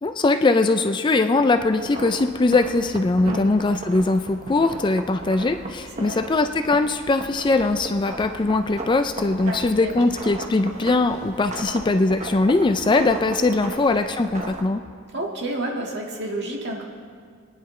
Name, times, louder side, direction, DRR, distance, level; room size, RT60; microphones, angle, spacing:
voice 1, 0.0-14.8, left 3 dB, 20° left, 8 dB, 0.3 m, -21 dB
sound 1, 1.6-14.6, right 2 dB, 35° right, 1.1 m, -36 dB
voice 2, 9.5-10.0 15.1-16.8, right 1 dB, 55° right, -1 dB, 1.8 m, -30 dB
24.0 x 9.8 x 3.2 m, 2.1 s
head